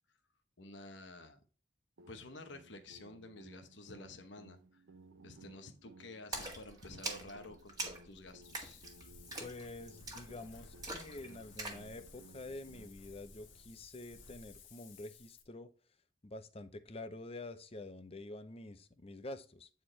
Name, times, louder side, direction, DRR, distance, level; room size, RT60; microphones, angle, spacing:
voice 1, 0.6-1.4 2.1-4.8 5.2-8.8, left 2 dB, 70° left, 7 dB, 1.0 m, -51 dB
sound 1, 2.0-12.9, right 2 dB, 85° right, 0.8 m, -60 dB
Splash splatter, 6.3-11.9, right 2 dB, 20° right, 1.6 m, -44 dB
Wind, 8.4-15.4, left 3 dB, 85° left, 1.5 m, -57 dB
voice 2, 9.4-15.7 16.2-19.7, left 2 dB, 30° left, 11 dB, 0.7 m, -48 dB
9.2 x 4.4 x 3.2 m, 0.37 s
head